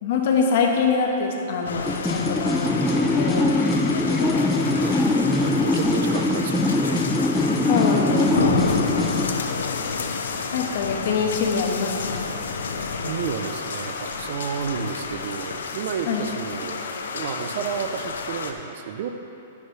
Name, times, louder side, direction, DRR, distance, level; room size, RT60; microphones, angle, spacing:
voice 1, 0.0-2.7 3.1-3.5 3.9-4.4 7.7-8.4 10.5-12.3 16.1-16.2, left 5 dB, 60° left, 1 dB, 1.5 m, -24 dB
sound 1, 1.6-18.5, left 4 dB, 90° left, 0.8 m, -30 dB
sound 2, 1.9-9.4, left 2 dB, 5° left, 0.5 m, -22 dB
voice 2, 2.9-3.5 4.8-7.0 8.3-9.0 12.9-16.8 17.1-19.1, right 7 dB, 55° right, 7 dB, 0.7 m, -32 dB
11.5 x 10.0 x 3.4 m, 2.9 s
hypercardioid pair, 145°, 0 cm